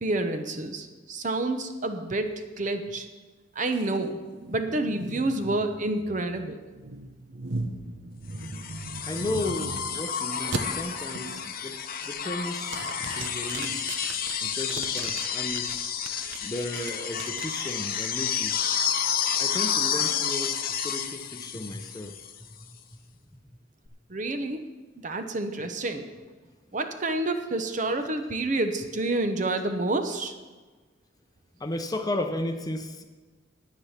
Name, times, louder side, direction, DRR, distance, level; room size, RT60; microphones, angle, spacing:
voice 1, 0.0-3.1 3.6-4.2 4.5-6.6 24.1-24.6 25.0-26.1 26.7-30.3, right 2 dB, 40° right, 7 dB, 0.8 m, -28 dB
sound 1, 3.7-10.0 10.5-10.6 11.1-11.5 11.9-12.3 12.7-15.6 16.1-18.1, right 3 dB, 75° right, 0.9 m, -38 dB
sound 2, 8.4-22.4 23.9-24.0, left 8 dB, 50° left, 0.8 m, -30 dB
voice 2, 9.1-12.8 13.1-14.0 14.4-15.8 16.1-18.6 19.4-22.2 31.6-33.0, left 1 dB, 20° left, 6 dB, 0.7 m, -34 dB
9.9 x 9.5 x 5.8 m, 1.3 s
head